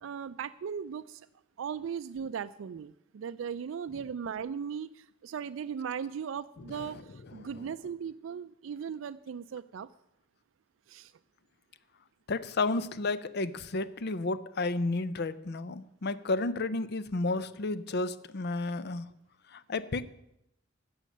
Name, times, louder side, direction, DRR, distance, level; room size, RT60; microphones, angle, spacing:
voice 1, 0.0-1.2 1.6-9.9 10.9-11.1, right 7 dB, 75° right, 11 dB, 0.4 m, -38 dB
voice 2, 12.3-19.1 19.5-20.0, left 3 dB, 55° left, 15 dB, 0.6 m, -32 dB
16.0 x 6.4 x 6.4 m, 0.82 s
head